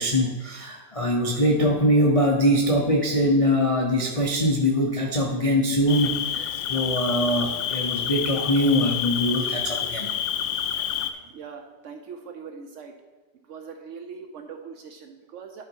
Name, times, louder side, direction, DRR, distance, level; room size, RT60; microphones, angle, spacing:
voice 1, 0.0-10.1, equal, 55° left, -1 dB, 0.3 m, -22 dB
Cricket, 5.9-11.1, left 9 dB, 75° left, 1.1 m, -28 dB
voice 2, 11.2-12.9 13.4-15.7, right 6 dB, 80° right, 5 dB, 0.6 m, -41 dB
11.5 x 4.0 x 4.6 m, 1.2 s
omnidirectional pair, 2.0 m